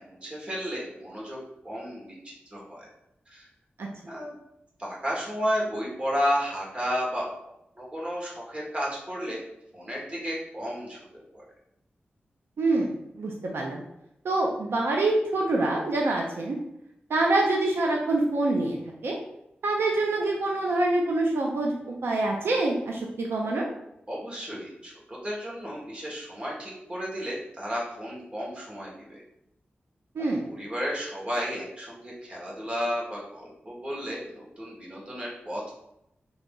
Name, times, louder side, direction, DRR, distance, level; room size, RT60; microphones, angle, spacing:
voice 1, 0.1-1.4 1.6-2.9 3.3-3.4 4.1-4.4 4.8-7.3 7.8-9.4 9.7-11.4 24.1-29.2 30.4-35.7, equal, 30° right, -4 dB, 1.4 m, -33 dB
voice 2, 12.6-12.9 13.1-13.8 14.2-16.6 17.1-18.8 19.0-19.2 19.6-23.7 30.2-30.4, right 2 dB, 90° right, 0 dB, 0.6 m, -25 dB
3.9 x 2.9 x 3.7 m, 0.82 s
wide cardioid pair, 110°, 4 cm